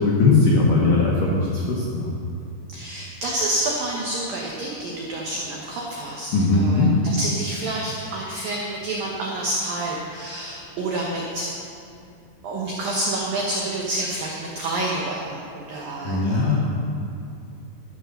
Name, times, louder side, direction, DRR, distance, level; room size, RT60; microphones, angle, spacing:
voice 1, 0.0-2.1 6.3-6.9 16.0-16.6, left 3 dB, 70° left, -3 dB, 2.1 m, -19 dB
voice 2, 2.7-11.5 12.4-16.4, right 1 dB, 65° right, -3 dB, 2.3 m, -28 dB
13.0 x 9.3 x 6.7 m, 2.6 s
omnidirectional pair, 5.6 m